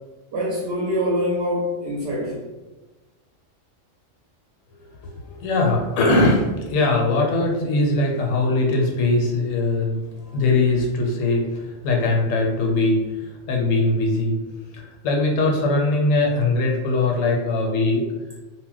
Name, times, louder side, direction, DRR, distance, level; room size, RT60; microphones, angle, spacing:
voice 1, 0.3-2.4, equal, 65° right, -3 dB, 0.7 m, -24 dB
voice 2, 5.1-14.4 14.7-18.1, left 2 dB, 85° left, 0 dB, 1.0 m, -21 dB
2.2 x 2.1 x 3.8 m, 1.1 s
omnidirectional pair, 1.3 m